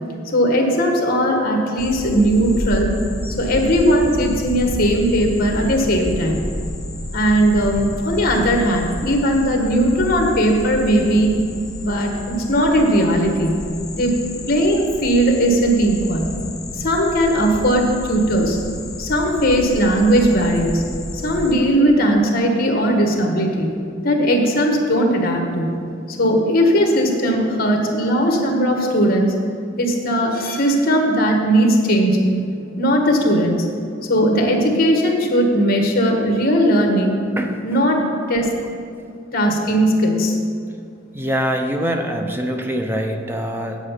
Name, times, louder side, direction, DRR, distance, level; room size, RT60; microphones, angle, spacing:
voice 1, 0.2-2.9 3.4-6.5 7.1-11.3 11.8-13.7 13.9-16.4 16.7-18.6 19.0-23.7 24.0-25.8 26.2-29.3 29.8-32.4 32.8-33.7 34.1-37.2 37.6-38.0 38.3-38.5 39.3-40.4, equal, 50° left, 2 dB, 1.5 m, -18 dB
sound 1, 1.8-21.5, left 1 dB, 20° left, 0.9 m, -31 dB
voice 2, 41.1-43.8, equal, 10° right, 4 dB, 0.8 m, -24 dB
8.2 x 8.1 x 5.8 m, 2.4 s
head